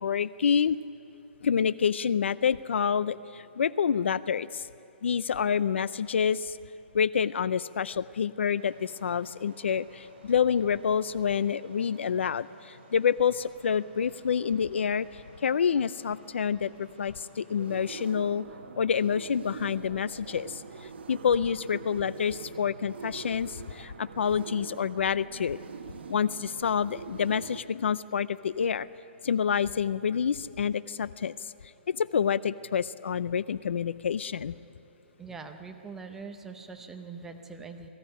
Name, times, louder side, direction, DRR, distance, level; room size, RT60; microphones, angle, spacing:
voice 1, 0.0-0.8 1.4-4.7 5.0-6.6 6.9-18.4 18.8-25.6 26.1-28.9 29.2-31.5 31.9-34.6, left 7 dB, 75° left, 18 dB, 0.5 m, -28 dB
sound 1, 8.6-18.1, right 1 dB, 40° right, 4.7 m, -55 dB
sound 2, 17.6-27.6, right 5 dB, 60° right, 1.3 m, -44 dB
voice 2, 35.2-37.9, right 4 dB, 5° right, 5 dB, 0.7 m, -42 dB
20.5 x 15.5 x 9.9 m, 2.7 s
hypercardioid pair, 175°, 6 cm